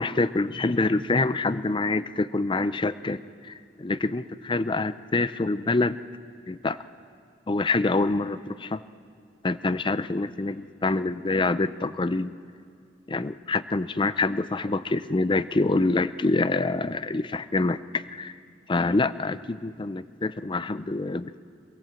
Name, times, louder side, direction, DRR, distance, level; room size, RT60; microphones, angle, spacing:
voice 1, 0.0-6.0 6.5-6.8 7.5-8.8 9.4-12.3 13.1-18.3 18.7-21.4, left 3 dB, 25° left, 15 dB, 0.5 m, -26 dB
22.5 x 22.5 x 7.6 m, 2.3 s
head